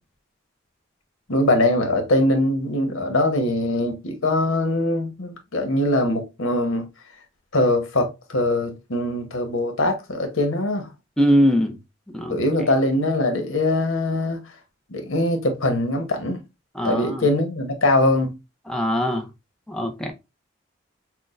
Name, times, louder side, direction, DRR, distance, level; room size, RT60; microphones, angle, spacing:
voice 1, 1.3-6.8 7.5-10.9 12.3-14.4 14.9-16.4 16.8-18.4, left 1 dB, 90° left, 1.1 m, -22 dB
voice 2, 11.2-11.8 12.1-12.4 16.8-17.3 18.7-19.3 19.7-20.1, equal, 5° left, 0.6 m, -21 dB
6.0 x 2.2 x 2.5 m
head